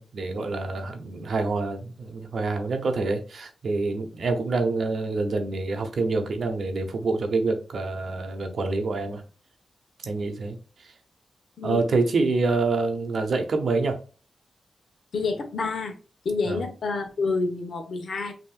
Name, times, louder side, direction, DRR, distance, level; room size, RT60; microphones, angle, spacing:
voice 1, 0.0-9.2 10.0-10.9 11.6-14.0 16.5-16.6, right 3 dB, 65° right, 5 dB, 0.9 m, -27 dB
voice 2, 15.1-15.9 16.2-18.3, left 4 dB, 70° left, 4 dB, 1.1 m, -28 dB
5.6 x 3.0 x 2.4 m, 0.36 s
wide cardioid pair, 115°, 0 cm